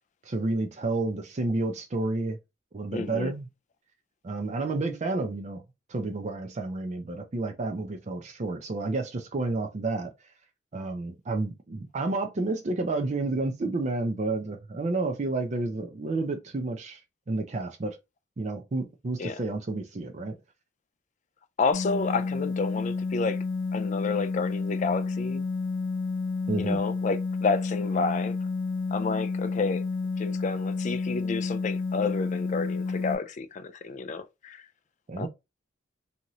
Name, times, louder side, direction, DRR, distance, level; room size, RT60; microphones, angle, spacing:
voice 1, 0.3-2.4 2.7-3.5 4.2-5.6 5.9-10.1 10.7-17.0 17.3-18.0 18.4-20.3 26.5-26.8 35.1-35.3, right 2 dB, 35° right, 0.4 m, -30 dB
voice 2, 2.9-3.3 19.2-19.4 21.6-23.4 23.7-25.4 26.6-28.4 28.9-29.8 30.2-34.6 35.2-35.3, left 4 dB, 35° left, 0.3 m, -30 dB
sound 1, 21.7-33.1, left 4 dB, 60° left, 0.9 m, -30 dB
2.7 x 2.5 x 2.9 m
head